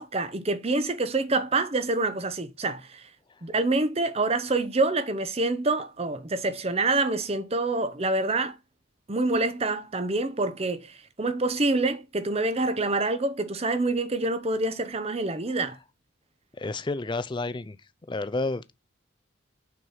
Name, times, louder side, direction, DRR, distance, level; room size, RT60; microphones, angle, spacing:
voice 1, 0.0-3.1 3.4-8.6 9.1-15.8, right 2 dB, 30° right, 0.7 m, -26 dB
voice 2, 16.6-17.8 18.1-18.7, left 3 dB, 20° left, 0.4 m, -30 dB
6.1 x 4.5 x 5.6 m
head